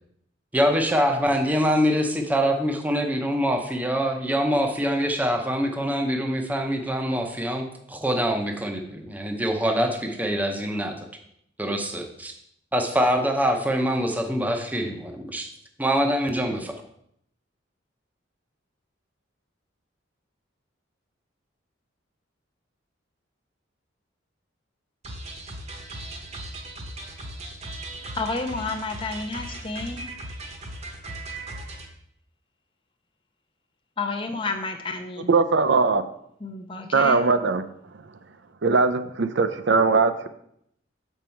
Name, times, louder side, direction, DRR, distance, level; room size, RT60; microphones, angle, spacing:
voice 1, 0.5-11.1 11.6-12.3 12.7-15.5 15.8-16.8, equal, 10° right, 3 dB, 0.7 m, -24 dB
sound 1, 25.0-31.9, right 1 dB, 35° right, 1.0 m, -38 dB
voice 2, 28.1-30.1 34.0-35.3 36.4-37.2, left 3 dB, 25° left, 5 dB, 0.6 m, -30 dB
voice 3, 35.3-36.0 36.9-37.6 38.6-40.3, right 4 dB, 60° right, 11 dB, 0.5 m, -20 dB
7.3 x 5.5 x 4.4 m, 0.72 s
head